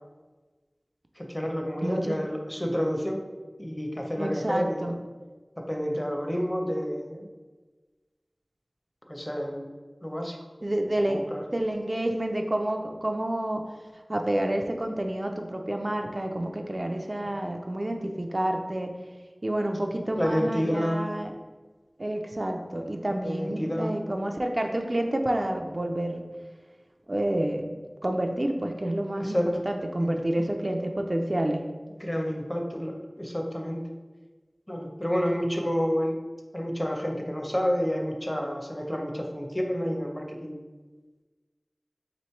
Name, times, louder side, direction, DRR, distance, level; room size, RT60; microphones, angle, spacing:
voice 1, 1.2-3.2 3.6-5.0 5.6-7.3 9.1-9.7 10.0-10.4 11.0-11.4 20.2-21.0 23.2-23.9 29.1-29.6 30.0-30.4 32.0-33.8 34.7-36.2 36.5-40.6, equal, 20° left, 1 dB, 0.6 m, -29 dB
voice 2, 1.8-2.2 4.2-5.0 10.6-13.6 14.1-18.9 19.4-21.3 22.0-26.2 27.1-27.7 28.0-29.4 29.7-31.6, right 1 dB, 45° right, 3 dB, 0.4 m, -29 dB
3.0 x 3.0 x 4.4 m, 1.3 s
wide cardioid pair, 40°, 0 cm